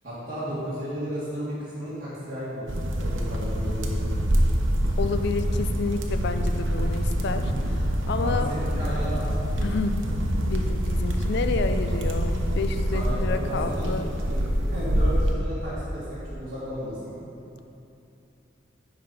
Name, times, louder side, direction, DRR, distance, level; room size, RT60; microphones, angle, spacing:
voice 1, 0.0-4.2 7.3-7.7 8.2-9.5 12.9-13.9 14.3-14.4 14.7-17.1, equal, 50° right, -13 dB, 2.0 m, -34 dB
sound 1, 2.7-15.3, equal, 85° right, 0.9 m, -25 dB
voice 2, 5.0-8.5 9.6-10.0 10.5-14.1, left 4 dB, 60° left, 8 dB, 0.4 m, -30 dB
10.5 x 4.2 x 5.5 m, 2.9 s
head